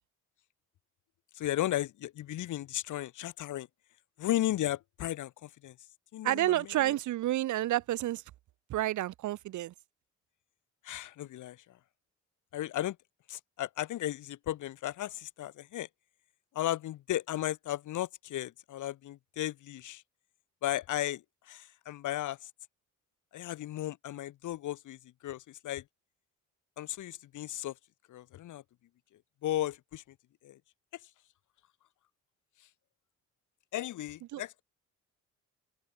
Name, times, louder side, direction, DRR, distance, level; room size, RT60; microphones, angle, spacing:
voice 1, 1.3-3.7 4.2-5.8 6.1-6.9 10.8-11.6 12.5-13.0 13.3-15.9 16.5-20.0 20.6-22.5 23.3-25.8 26.8-27.7 28.1-28.6 29.4-30.0 30.4-30.6 33.7-34.6, left 13 dB, 80° left, 3.8 m, -35 dB
voice 2, 6.2-8.2 8.7-9.7 34.3-34.4, right 14 dB, 75° right, 1.1 m, -30 dB
open air
cardioid pair, 90°, 30 cm